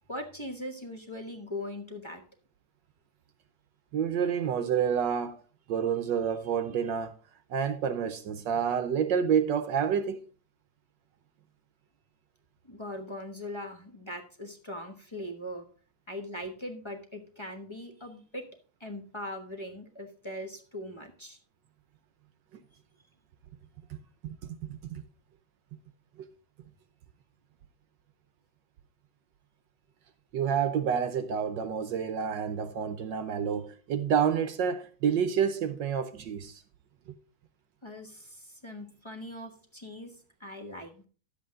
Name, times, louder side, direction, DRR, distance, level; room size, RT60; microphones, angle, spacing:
voice 1, 0.1-2.2 12.6-15.6 16.1-18.4 18.8-21.4 37.8-41.0, left 1 dB, 20° left, 0.9 m, -40 dB
voice 2, 3.9-5.4 5.7-7.1 7.5-10.2 23.9-24.3 24.6-25.0 26.2-26.3 30.3-36.6, right 7 dB, 70° right, 1.3 m, -29 dB
11.0 x 7.8 x 3.7 m
omnidirectional pair, 2.3 m